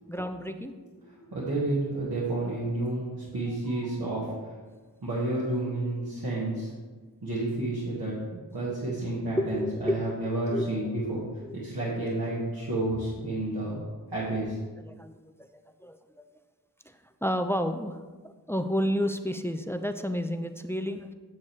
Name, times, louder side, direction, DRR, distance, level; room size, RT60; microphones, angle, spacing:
voice 1, 0.1-0.7 3.3-3.8 4.2-4.3 9.4-10.7 11.4-11.6 14.8-16.2 16.9-18.0 18.2-21.1, equal, 5° left, 8 dB, 0.5 m, -31 dB
voice 2, 1.3-4.3 5.0-6.7 7.2-11.2 11.5-13.8 14.1-14.6, right 2 dB, 75° right, -9 dB, 1.9 m, -30 dB
8.6 x 7.2 x 3.2 m, 1.3 s
wide cardioid pair, 45°, 37 cm